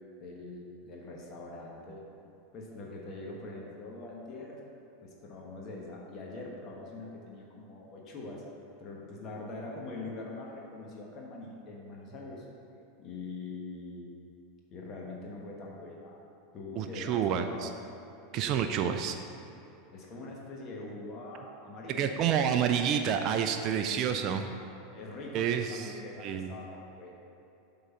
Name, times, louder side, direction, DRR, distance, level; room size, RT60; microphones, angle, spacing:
voice 1, 0.2-2.0 2.5-4.6 5.0-8.4 8.8-12.4 13.0-14.1 14.7-16.2 16.5-17.7 18.3-18.7 19.9-22.2 23.8-24.3 24.9-27.1, left 2 dB, 40° left, -2 dB, 1.2 m, -43 dB
voice 2, 16.8-17.7 18.3-19.2 22.0-24.5 25.3-25.9 26.2-26.5, right 8 dB, 45° right, 6 dB, 0.4 m, -29 dB
7.9 x 3.8 x 5.6 m, 2.8 s
figure-of-eight pair, 85°, 0 cm